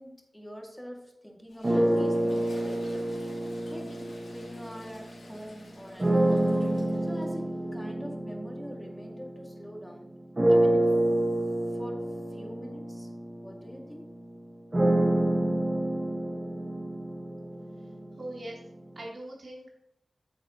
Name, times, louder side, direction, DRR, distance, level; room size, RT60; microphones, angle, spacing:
voice 1, 0.0-3.1 3.7-6.5 7.0-10.1 10.5-11.0 11.7-13.1 13.4-14.2, equal, 5° left, 1 dB, 2.1 m, -45 dB
Toilet flush, 1.5-7.3, left 1 dB, 85° left, 2.3 m, -47 dB
sound 1, 1.6-5.2 6.0-9.8 10.4-18.3, right 1 dB, 30° right, 1.5 m, -28 dB
voice 2, 18.2-18.6 18.9-19.7, right 1 dB, 65° right, -2 dB, 2.9 m, -41 dB
9.1 x 7.6 x 2.9 m, 0.83 s
wide cardioid pair, 75°, 0 cm